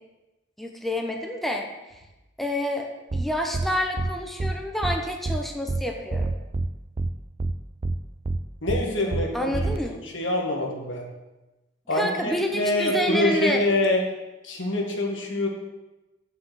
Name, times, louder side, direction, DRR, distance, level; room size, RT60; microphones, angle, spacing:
voice 1, 0.6-1.7 2.4-6.3 9.3-10.0 11.9-13.7, left 1 dB, ahead, 2 dB, 0.7 m, -28 dB
sound 1, 3.1-3.2 3.5-3.7 4.0-4.1 4.4-4.5 4.8-5.0 5.3-5.4 5.7-5.8 6.1-6.7 7.0-7.1 7.4-7.5 7.8-8.0 8.3-8.4 8.7-8.8 9.1-9.2 9.5-9.8, right 2 dB, 30° right, 0.4 m, -26 dB
voice 2, 8.6-9.5 10.0-11.1 11.9-14.0 14.4-15.5, left 1 dB, 85° left, 0 dB, 1.8 m, -25 dB
7.6 x 6.1 x 6.2 m, 1.1 s
head